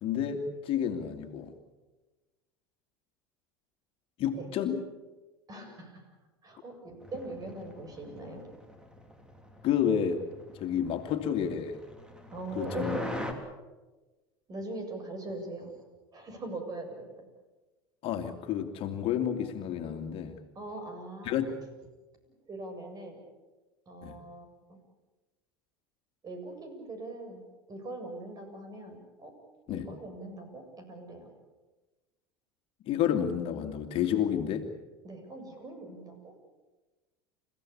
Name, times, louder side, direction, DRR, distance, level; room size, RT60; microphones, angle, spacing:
voice 1, 0.0-1.5 4.2-4.8 9.6-10.2 10.5-11.8 12.6-13.0 13.3-13.4 18.0-20.4 21.3-21.6 24.0-24.2 29.7-29.9 32.9-34.7, left 9 dB, 50° left, 5 dB, 2.4 m, -30 dB
voice 2, 5.5-6.1 6.4-8.4 12.3-12.9 14.5-15.7 16.1-17.2 20.5-21.4 22.2-23.2 23.9-24.8 26.2-29.3 29.7-31.3 35.0-36.3, right 2 dB, 35° right, 5 dB, 7.5 m, -42 dB
sound 1, 7.0-13.3, left 1 dB, 5° right, 3.5 m, -42 dB
29.5 x 16.0 x 8.6 m, 1.2 s
hypercardioid pair, 80°, 12 cm